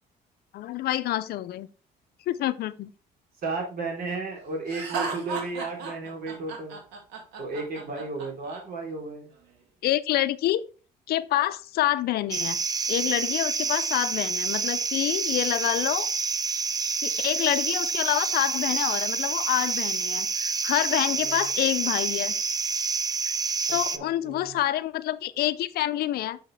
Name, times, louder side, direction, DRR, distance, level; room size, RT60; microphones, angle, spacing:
voice 1, 0.5-1.7 2.3-2.9 9.8-10.6 11.1-12.6 12.9-16.1 17.0-22.3 23.7-26.4, left 14 dB, 65° left, 0.5 m, -27 dB
voice 2, 3.4-6.8 7.4-9.3 21.2-21.4 23.9-24.6, right 3 dB, 60° right, 3.5 m, -34 dB
Laughter, 4.7-8.6, right 5 dB, 90° right, 2.3 m, -34 dB
sound 1, 12.3-24.0, right 5 dB, 25° right, 0.5 m, -28 dB
6.5 x 6.2 x 3.2 m
cardioid pair, 110°, 17 cm